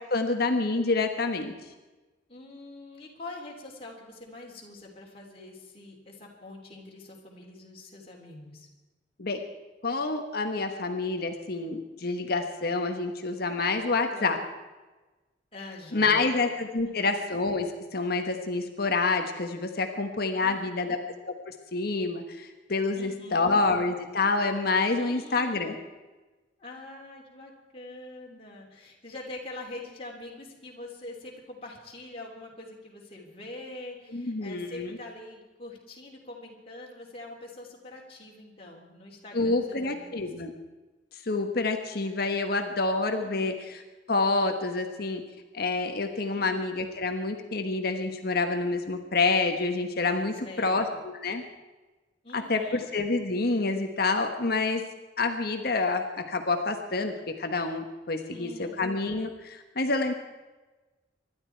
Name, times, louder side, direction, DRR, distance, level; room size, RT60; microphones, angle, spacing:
voice 1, 0.1-1.5 9.2-9.4 9.8-14.4 15.9-21.0 21.5-25.8 34.1-34.9 39.3-40.5 41.1-43.8 44.1-45.2 45.5-51.4 52.3-54.8 55.2-60.1, left 3 dB, 55° left, 5 dB, 1.3 m, -28 dB
voice 2, 2.3-8.7 14.1-14.4 15.5-16.4 16.8-17.1 20.4-20.9 23.0-23.5 25.0-25.7 26.6-40.3 43.1-43.5 46.3-46.6 50.4-51.0 52.2-52.9 58.3-58.8, left 2 dB, 30° left, -3 dB, 3.2 m, -44 dB
25.0 x 12.0 x 4.6 m, 1.2 s
head